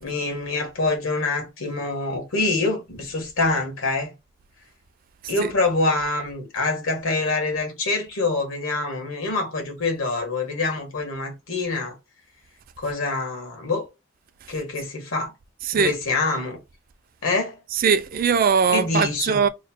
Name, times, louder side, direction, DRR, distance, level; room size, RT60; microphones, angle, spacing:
voice 1, 0.0-4.1 5.3-11.9 12.8-13.8 14.5-15.3 15.7-16.6 17.2-17.5 18.7-19.4, left 3 dB, 85° left, 1.3 m, -25 dB
voice 2, 17.7-19.5, right 6 dB, 45° right, 0.4 m, -20 dB
3.1 x 2.1 x 4.2 m
head